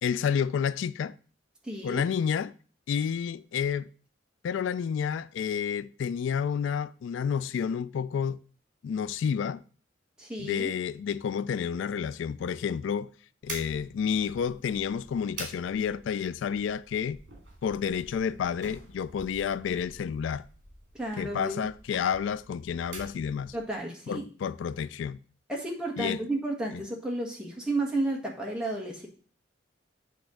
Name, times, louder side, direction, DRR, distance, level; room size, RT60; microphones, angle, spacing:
voice 1, 0.0-1.2 1.8-2.5 2.9-3.9 4.4-8.4 8.8-9.6 10.4-13.1 13.4-17.2 17.6-20.5 21.2-23.5 24.1-25.2 26.0-26.2, left 7 dB, 80° left, 0.3 m, -30 dB
voice 2, 1.6-2.0 10.2-10.7 20.9-21.7 23.5-24.2 25.5-29.1, right 2 dB, 5° right, 1.6 m, -32 dB
sound 1, 13.4-23.8, right 2 dB, 60° right, 2.7 m, -47 dB
8.3 x 3.4 x 6.4 m
head